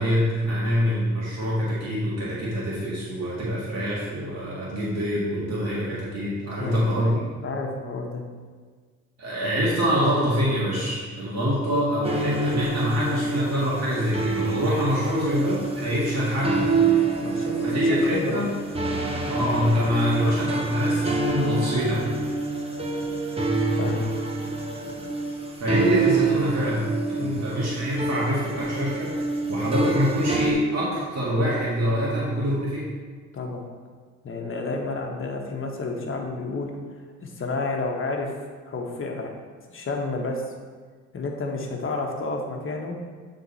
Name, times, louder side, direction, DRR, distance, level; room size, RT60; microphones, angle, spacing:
voice 1, 0.0-7.2 9.2-16.8 17.6-18.5 19.3-22.0 25.6-29.1 29.5-32.8, equal, 60° right, -7 dB, 1.9 m, -25 dB
voice 2, 6.6-8.2 17.2-18.4 23.8-24.1 27.2-27.5 33.3-33.6 34.2-36.7 37.2-38.3 38.7-39.3 39.7-40.4 41.1-43.0, left 3 dB, 45° left, 1 dB, 1.2 m, -30 dB
sound 1, 12.0-30.5, right 3 dB, 20° right, 0.9 m, -27 dB
8.9 x 3.8 x 4.1 m, 1.5 s
cardioid pair, 90°, 30 cm